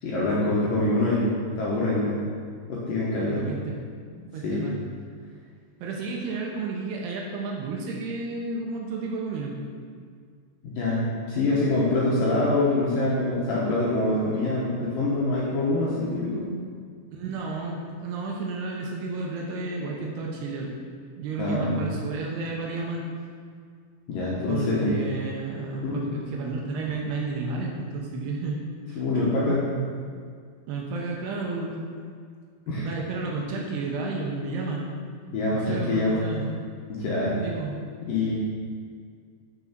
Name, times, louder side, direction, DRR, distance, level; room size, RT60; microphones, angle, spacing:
voice 1, 0.0-2.2 2.7-3.4 4.4-4.7 10.6-16.5 21.4-21.8 24.1-25.0 25.8-26.0 29.0-29.7 32.7-32.9 35.3-36.3 36.9-37.3 38.0-38.4, left 2 dB, 70° left, -6 dB, 2.3 m, -25 dB
voice 2, 3.3-3.8 4.3-4.8 5.8-9.5 14.3-14.4 17.1-20.8 21.2-23.1 24.5-28.6 28.9-29.6 30.7-31.8 32.7-34.9 35.5-36.6 37.4-37.8, right 3 dB, 75° right, -1 dB, 2.7 m, -32 dB
6.8 x 6.1 x 6.0 m, 2.1 s
omnidirectional pair, 5.2 m